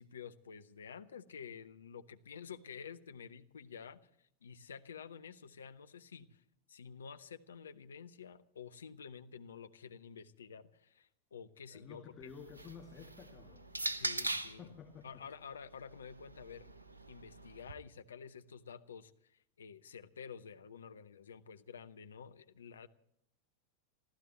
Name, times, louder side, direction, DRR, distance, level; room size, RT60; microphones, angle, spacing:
voice 1, 0.0-6.4 6.7-12.3 14.0-14.7 15.0-16.7 17.1-22.9, left 6 dB, 70° left, 10 dB, 0.9 m, -50 dB
voice 2, 11.7-13.7 14.3-15.1, left 7 dB, 25° left, 1 dB, 2.3 m, -52 dB
sound 1, 12.2-14.7 15.6-17.7, right 2 dB, 80° right, 1.0 m, -41 dB
27.5 x 15.0 x 3.0 m, 0.75 s
figure-of-eight pair, 90°, 0 cm